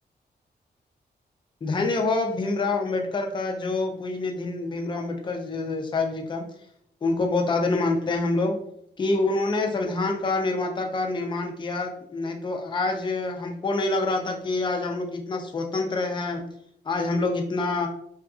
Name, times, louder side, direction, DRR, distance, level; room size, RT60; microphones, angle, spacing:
voice 1, 1.6-6.4 7.0-8.6 9.0-16.5 16.9-17.9, left 3 dB, 25° left, 3 dB, 0.4 m, -26 dB
2.7 x 2.4 x 2.3 m, 0.70 s
wide cardioid pair, 105°, 18 cm